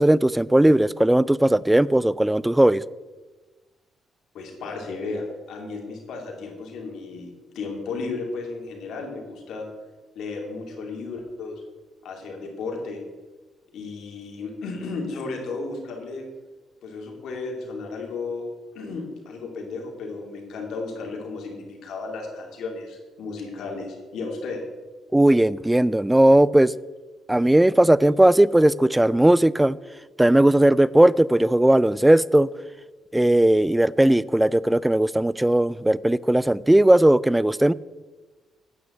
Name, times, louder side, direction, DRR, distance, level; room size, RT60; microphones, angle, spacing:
voice 1, 0.0-2.8 25.1-26.7 27.3-29.8 30.2-32.5 33.1-37.7, right 1 dB, 10° right, 0.3 m, -18 dB
voice 2, 4.3-9.7 10.1-11.6 12.0-13.0 13.7-16.2 16.8-18.4 18.7-24.6, left 3 dB, 75° left, 2.6 m, -34 dB
9.4 x 6.2 x 8.3 m
cardioid pair, 90°, 0 cm